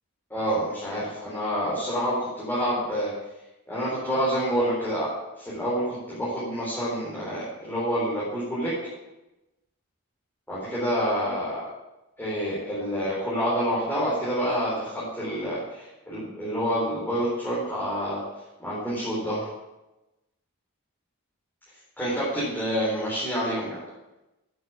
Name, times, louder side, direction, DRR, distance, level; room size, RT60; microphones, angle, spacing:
voice 1, 0.3-3.1 3.7-5.1 5.4-8.7 10.5-11.6 12.2-18.2 18.6-19.5 22.0-23.7, equal, 10° left, -10 dB, 4.2 m, -28 dB
8.9 x 8.5 x 8.4 m, 1.0 s
head